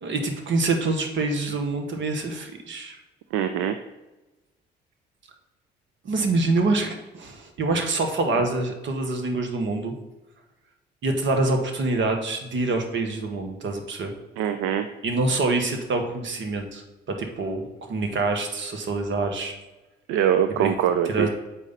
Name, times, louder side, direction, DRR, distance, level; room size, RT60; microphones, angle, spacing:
voice 1, 0.0-3.0 6.0-9.9 11.0-14.1 15.0-19.5 20.5-20.7 21.0-21.3, right 3 dB, 60° right, 5 dB, 1.4 m, -26 dB
voice 2, 3.3-3.8 14.4-14.9 20.1-21.3, right 9 dB, 80° right, 8 dB, 0.5 m, -23 dB
7.6 x 4.9 x 4.1 m, 1.1 s
hypercardioid pair, 50°, 21 cm